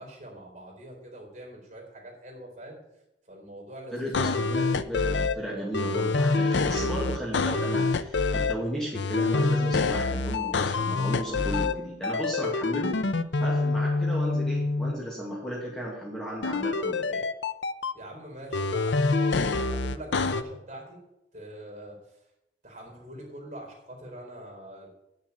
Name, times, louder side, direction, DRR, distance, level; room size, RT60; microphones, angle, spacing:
voice 1, 0.0-2.8 3.3-4.4 17.9-21.0 21.3-22.0 22.6-24.9, right 1 dB, 40° right, -1 dB, 4.2 m, -44 dB
voice 2, 3.9-13.0 13.4-17.2, equal, 5° left, -4 dB, 2.5 m, -35 dB
sound 1, 4.1-5.3 5.7-8.5 8.9-11.7 12.0-14.9 16.4-17.9 18.5-20.4, left 3 dB, 80° left, 0.6 m, -26 dB
9.8 x 6.6 x 8.8 m, 0.89 s
head